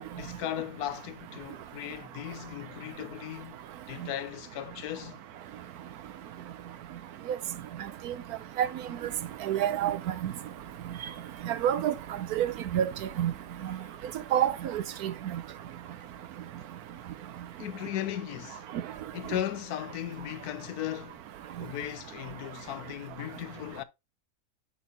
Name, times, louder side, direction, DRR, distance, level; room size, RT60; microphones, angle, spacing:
voice 1, 0.2-3.6 3.9-5.2 13.8-13.9 17.6-18.7 19.1-21.2 21.6-23.8, left 12 dB, 90° left, 1.2 m, -37 dB
voice 2, 9.4-10.0 10.2-10.3 11.5-11.9 12.3-12.9 13.2-13.3 14.3-15.1, right 10 dB, 80° right, 1.2 m, -27 dB
11.0 x 4.1 x 2.8 m
omnidirectional pair, 1.6 m